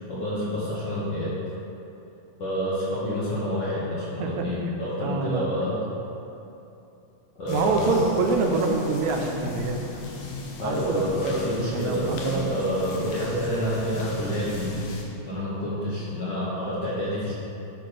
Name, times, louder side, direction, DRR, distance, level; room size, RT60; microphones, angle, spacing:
voice 1, 0.1-1.4 2.4-5.8 7.4-8.0 10.6-17.3, equal, 60° left, -9 dB, 1.2 m, -28 dB
voice 2, 5.0-5.5 7.5-10.1 10.6-11.3 11.7-12.4, right 4 dB, 85° right, 3 dB, 1.9 m, -26 dB
sound 1, 7.5-15.0, left 2 dB, 75° left, 2.0 m, -37 dB
12.0 x 4.3 x 3.3 m, 2.9 s
omnidirectional pair, 3.3 m